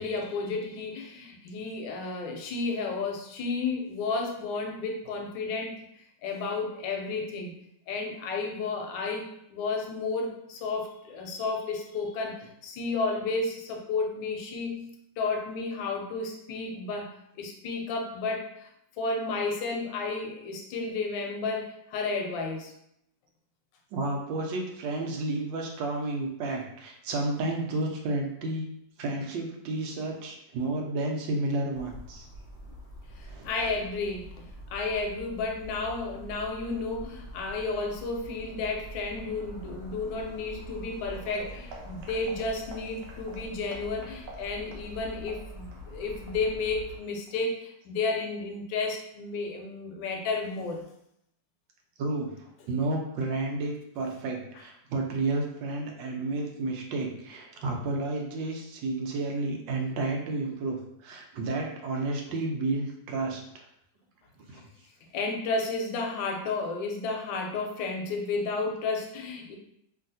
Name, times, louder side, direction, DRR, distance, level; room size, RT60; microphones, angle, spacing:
voice 1, 0.0-5.8 6.2-7.5 7.9-14.9 15.2-18.7 19.0-22.7 33.2-50.8 64.5-64.6 65.1-69.6, left 3 dB, 85° left, 2 dB, 1.3 m, -32 dB
voice 2, 23.9-28.7 29.0-32.3 33.2-33.7 52.0-52.3 52.7-63.6 64.5-64.6, right 2 dB, 90° right, 2 dB, 1.3 m, -31 dB
sound 1, 31.7-47.0, equal, 55° left, 0.8 m, -45 dB
sound 2, 41.1-47.7 48.0-48.3 48.7-48.8 49.3-49.4, right 2 dB, 75° right, 1.2 m, -49 dB
3.1 x 2.7 x 2.6 m, 0.75 s
omnidirectional pair, 2.0 m